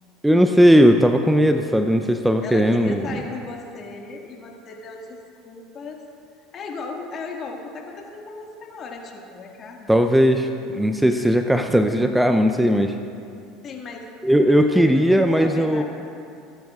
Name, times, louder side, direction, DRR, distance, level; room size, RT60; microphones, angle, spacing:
voice 1, 0.2-3.2 9.9-13.0 14.2-15.8, equal, 5° right, 6 dB, 0.6 m, -17 dB
voice 2, 2.4-6.1 6.5-10.1 11.0-11.3 13.6-14.1 14.5-15.8, left 4 dB, 40° left, 0 dB, 1.9 m, -37 dB
23.0 x 10.5 x 2.5 m, 2.5 s
hypercardioid pair, 75°, 0 cm